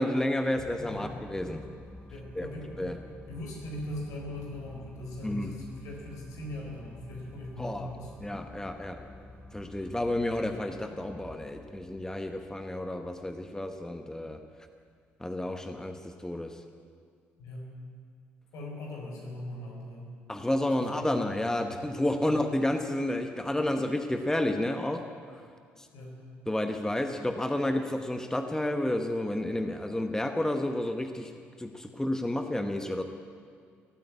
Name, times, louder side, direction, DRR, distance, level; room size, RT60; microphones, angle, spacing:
voice 1, 0.0-1.6 2.4-2.5 2.8-3.0 5.2-5.5 7.6-7.9 8.2-9.0 9.5-14.4 15.2-16.6 20.3-25.4 25.8-25.9 26.5-31.3 31.6-33.0, left 1 dB, 10° left, 6 dB, 1.2 m, -31 dB
sound 1, 0.6-15.0, left 1 dB, 25° left, 3.0 m, -50 dB
voice 2, 0.9-1.2 2.1-2.9 3.3-8.1 17.4-17.7 18.5-20.1 20.8-21.3 22.2-22.4 25.9-26.2, left 1 dB, 75° left, -1 dB, 4.5 m, -40 dB
18.5 x 9.2 x 8.3 m, 2.2 s
hypercardioid pair, 55°, 6 cm